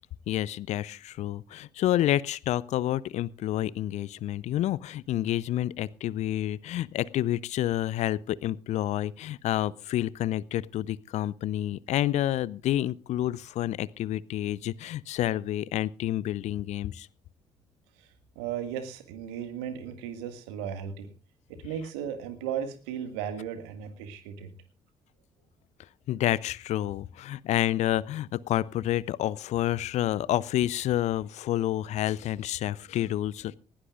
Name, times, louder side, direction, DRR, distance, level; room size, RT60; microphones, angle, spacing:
voice 1, 0.3-17.1 26.1-33.6, left 13 dB, 55° left, 23 dB, 0.6 m, -29 dB
voice 2, 18.4-21.1 21.5-24.5, right 8 dB, 70° right, 9 dB, 1.9 m, -35 dB
19.5 x 17.5 x 2.5 m, 0.34 s
figure-of-eight pair, 45°, 14 cm